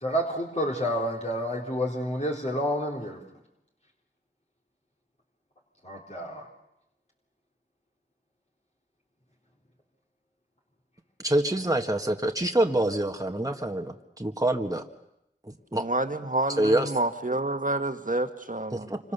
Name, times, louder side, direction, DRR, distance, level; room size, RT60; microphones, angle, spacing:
voice 1, 0.0-3.2 5.8-6.5, equal, 35° left, -1 dB, 3.8 m, -29 dB
voice 2, 11.2-14.8 15.5-15.8 16.6-16.9 18.7-18.8, right 1 dB, 20° right, 4 dB, 1.8 m, -26 dB
voice 3, 15.7-19.0, right 2 dB, 45° right, 8 dB, 1.8 m, -28 dB
28.0 x 25.5 x 6.9 m, 0.83 s
wide cardioid pair, 40°, 20 cm